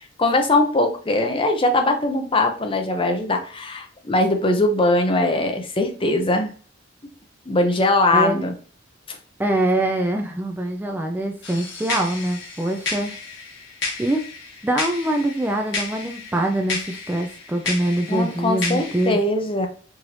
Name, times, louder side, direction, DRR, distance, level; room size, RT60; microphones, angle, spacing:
voice 1, 0.2-6.5 7.5-8.5 9.1-9.2 18.1-19.7, left 2 dB, 25° left, 4 dB, 0.6 m, -21 dB
voice 2, 8.1-8.4 9.4-13.1 14.0-14.2 14.6-19.2, right 1 dB, 10° right, 3 dB, 0.3 m, -24 dB
sound 1, 11.4-19.1, left 3 dB, 70° left, 1.3 m, -32 dB
4.7 x 2.6 x 3.1 m, 0.43 s
head